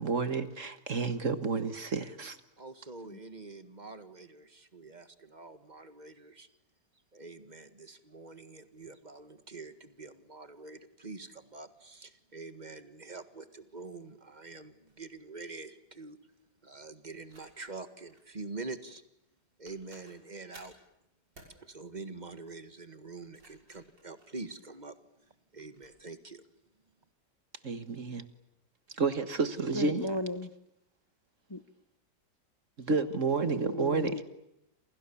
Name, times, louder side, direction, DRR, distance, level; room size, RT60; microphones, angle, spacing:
voice 1, 0.0-2.4 27.6-28.2 28.9-30.1 32.8-34.2, right 4 dB, 45° right, 1.8 m, -30 dB
voice 2, 2.6-6.5 7.1-16.2 16.6-19.0 19.6-20.7 21.6-25.0 25.3-26.4, right 3 dB, 25° right, 1.8 m, -45 dB
sound 1, 14.9-15.1 17.2-18.3 19.3-19.4 19.7-20.8 21.3-21.6 23.1-25.0 25.6-25.9, right 2 dB, 75° right, 7.0 m, -58 dB
voice 3, 29.7-30.5 31.5-31.6 33.4-34.2, left 1 dB, 20° left, 0.7 m, -35 dB
29.5 x 27.5 x 7.1 m
omnidirectional pair, 1.9 m